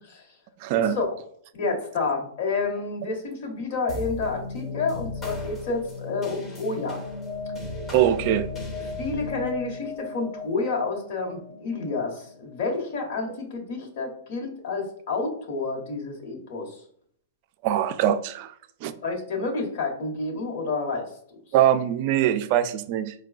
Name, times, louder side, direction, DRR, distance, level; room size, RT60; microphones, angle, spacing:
voice 1, 0.6-1.0 7.9-8.5 17.6-18.5 18.8-18.9 21.5-23.1, right 11 dB, 45° right, 10 dB, 0.3 m, -22 dB
voice 2, 1.5-7.0 9.0-16.7 19.0-21.1, left 3 dB, 55° left, 1 dB, 1.1 m, -29 dB
sound 1, 3.9-12.6, left 2 dB, 20° left, 0.7 m, -36 dB
4.4 x 2.2 x 2.4 m, 0.64 s
hypercardioid pair, 140°, 0 cm